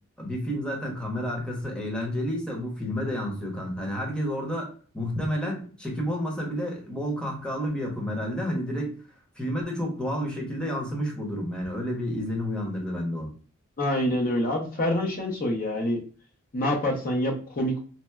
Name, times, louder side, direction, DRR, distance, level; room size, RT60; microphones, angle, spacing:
voice 1, 0.2-4.7 4.9-9.0 9.4-13.3, equal, 5° left, -1 dB, 0.8 m, -30 dB
voice 2, 13.8-16.0 16.5-17.8, left 1 dB, 45° left, 0 dB, 0.6 m, -26 dB
4.2 x 2.0 x 2.2 m, 0.40 s
head